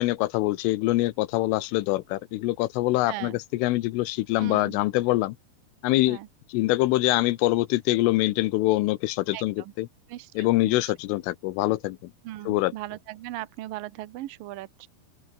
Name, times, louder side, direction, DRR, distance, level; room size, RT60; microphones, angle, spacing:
voice 1, 0.0-5.4 5.8-6.2 6.5-9.9 10.3-12.1 12.5-12.7, left 18 dB, 80° left, 3.4 m, -24 dB
voice 2, 4.4-4.8 6.1-6.3 9.3-9.7 10.1-10.7 12.2-14.9, right 15 dB, 75° right, 2.0 m, -38 dB
open air
omnidirectional pair, 5.8 m